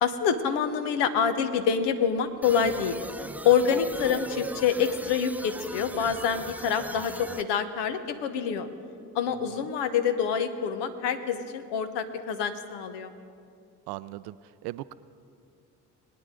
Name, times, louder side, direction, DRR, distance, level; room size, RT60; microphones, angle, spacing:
voice 1, 0.0-3.0 3.4-8.7 9.1-13.1, left 7 dB, 70° left, 9 dB, 1.0 m, -26 dB
sound 1, 2.4-7.4, right 1 dB, 5° right, 0.4 m, -39 dB
voice 2, 13.9-14.4 14.6-14.9, right 17 dB, 65° right, 16 dB, 0.5 m, -38 dB
21.0 x 9.5 x 3.8 m, 2.4 s
hypercardioid pair, 45°, 43 cm